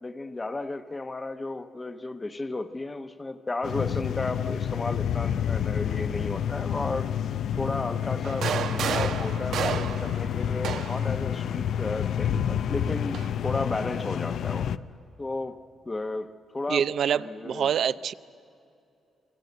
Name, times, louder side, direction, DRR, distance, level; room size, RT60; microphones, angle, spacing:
voice 1, 0.0-7.1 7.6-14.7 15.2-15.6 15.8-16.9 17.2-17.7, left 2 dB, 20° left, 9 dB, 0.9 m, -33 dB
sound 1, 3.6-14.8, left 9 dB, 65° left, 0.6 m, -29 dB
sound 2, 8.2-11.1 12.2-13.3, right 8 dB, 80° right, 1.1 m, -32 dB
voice 2, 16.7-18.1, right 8 dB, 60° right, 15 dB, 0.6 m, -26 dB
29.0 x 23.5 x 7.9 m, 2.7 s
cardioid pair, 140°, 0 cm